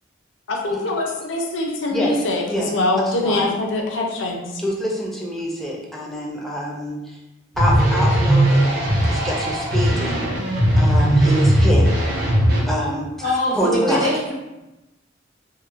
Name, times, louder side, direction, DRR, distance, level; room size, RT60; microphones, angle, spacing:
voice 1, 0.5-4.6, left 2 dB, 80° left, 1 dB, 0.5 m, -23 dB
voice 2, 1.9-3.5 4.6-7.2 7.6-11.9 12.7-13.1 13.6-14.1, equal, ahead, -3 dB, 0.4 m, -26 dB
sound 1, 7.5-12.6, right 1 dB, 55° right, 0.6 m, -18 dB
voice 3, 13.2-14.3, equal, 90° right, -10 dB, 0.9 m, -22 dB
2.7 x 2.0 x 2.4 m, 1.0 s
head